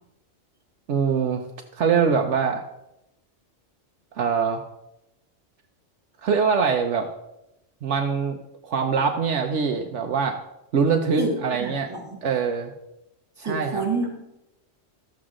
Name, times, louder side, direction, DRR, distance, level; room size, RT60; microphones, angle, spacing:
voice 1, 0.9-1.4 1.7-2.6 4.1-4.6 6.2-7.1 7.8-8.4 8.6-10.4 10.7-11.9 12.2-12.7 13.4-13.9, right 6 dB, 75° right, 4 dB, 1.1 m, -23 dB
voice 2, 11.2-12.2 13.4-14.4, right 3 dB, 20° right, -2 dB, 2.8 m, -29 dB
13.0 x 7.9 x 3.8 m, 0.88 s
omnidirectional pair, 1.3 m